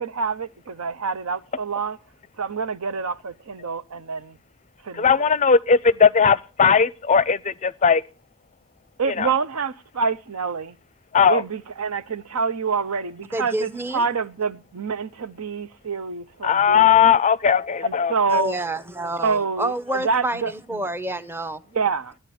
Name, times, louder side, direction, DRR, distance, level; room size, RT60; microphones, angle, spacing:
voice 1, 0.0-2.0 2.4-4.4 4.8-5.3 9.0-10.8 11.3-17.1 17.8-18.5 19.2-20.8 21.7-22.1, right 5 dB, 85° right, 0.8 m, -27 dB
voice 2, 4.9-8.0 9.2-9.3 11.1-11.4 16.4-18.1, left 6 dB, 35° left, 0.5 m, -18 dB
voice 3, 13.3-14.0 18.3-21.6, right 1 dB, 10° right, 0.7 m, -28 dB
14.5 x 10.5 x 4.2 m
head